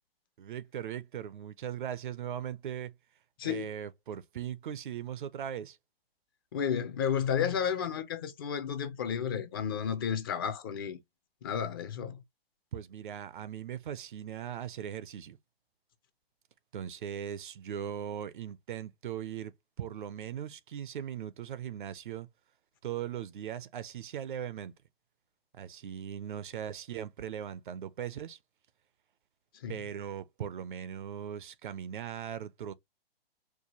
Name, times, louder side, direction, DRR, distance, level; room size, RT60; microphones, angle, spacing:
voice 1, 0.4-2.9 3.4-5.8 12.7-15.4 16.7-19.5 19.8-22.3 22.8-24.7 25.5-28.4 29.7-32.7, right 9 dB, 55° right, 0.5 m, -39 dB
voice 2, 3.4-3.7 6.5-11.0 11.4-12.2 29.6-29.7, left 8 dB, 25° left, 0.4 m, -32 dB
4.6 x 2.2 x 2.9 m
figure-of-eight pair, 130°, 30 cm